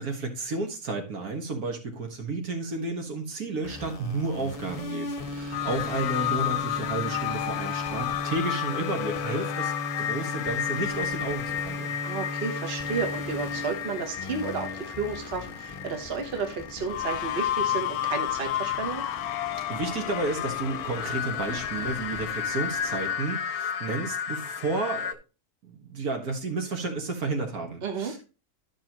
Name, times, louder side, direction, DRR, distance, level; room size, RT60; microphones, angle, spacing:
voice 1, 0.0-9.7 10.0-12.0 19.7-25.2 25.6-28.2, right 3 dB, 70° right, 4 dB, 1.9 m, -32 dB
sound 1, 3.6-23.1, left 2 dB, 35° left, 0.6 m, -38 dB
sound 2, 5.5-25.1, left 11 dB, 80° left, 1.1 m, -32 dB
voice 2, 12.0-19.0 27.8-28.2, right 5 dB, 45° right, 4 dB, 1.3 m, -32 dB
12.0 x 5.5 x 3.0 m, 0.32 s
omnidirectional pair, 1.6 m